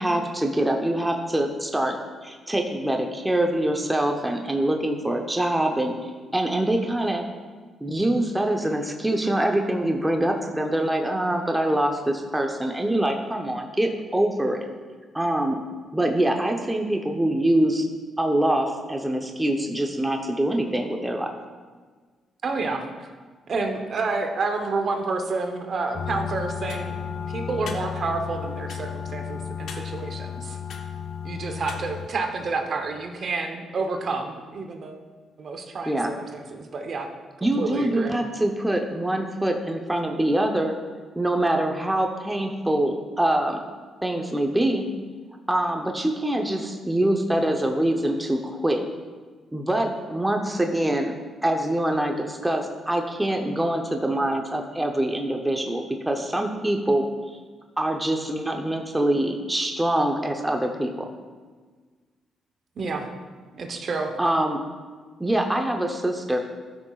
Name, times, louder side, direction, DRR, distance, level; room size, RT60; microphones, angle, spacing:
voice 1, 0.0-2.0 2.2-5.9 6.3-7.2 7.8-14.6 15.1-15.6 15.9-17.8 18.2-21.3 35.9-36.1 37.4-40.7 41.2-43.6 44.0-44.9 45.5-48.8 49.5-51.1 51.4-57.0 57.8-61.1 64.2-64.6 65.2-66.4, right 1 dB, 10° right, 3 dB, 0.8 m, -24 dB
voice 2, 22.4-22.9 23.5-26.9 27.3-30.6 31.2-35.0 35.4-37.1 37.6-38.1 62.8-63.1 63.5-64.1, right 3 dB, 55° right, 4 dB, 1.0 m, -29 dB
sound 1, 25.9-32.1, left 7 dB, 70° left, 0.8 m, -33 dB
13.5 x 6.1 x 2.4 m, 1.5 s
cardioid pair, 75°, 0 cm